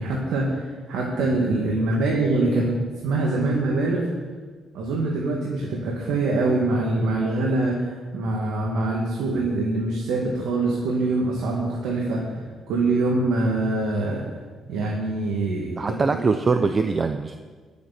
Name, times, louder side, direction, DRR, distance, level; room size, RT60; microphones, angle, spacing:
voice 1, 0.0-4.1 4.7-14.2 14.7-16.2, right 2 dB, 85° right, -3 dB, 2.4 m, -24 dB
voice 2, 15.8-17.4, right 4 dB, 35° right, 7 dB, 0.7 m, -23 dB
22.0 x 8.5 x 4.4 m, 1.4 s
cardioid pair, 90°, 0 cm